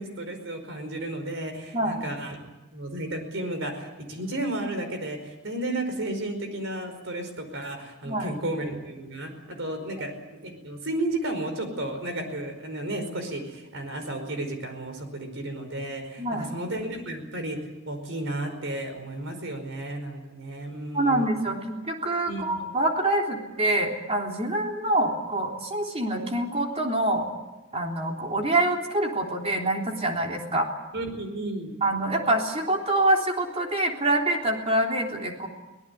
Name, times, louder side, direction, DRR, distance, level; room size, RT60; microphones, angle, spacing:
voice 1, 0.0-2.4 2.7-9.3 9.6-10.1 10.4-17.6 17.9-21.3 22.3-22.6 30.9-31.7, right 1 dB, 65° right, 7 dB, 5.0 m, -33 dB
voice 2, 16.2-16.5 20.9-27.3 27.7-30.7 31.8-35.5, right 1 dB, 30° right, 1 dB, 3.6 m, -25 dB
24.5 x 18.0 x 8.4 m, 1.1 s
head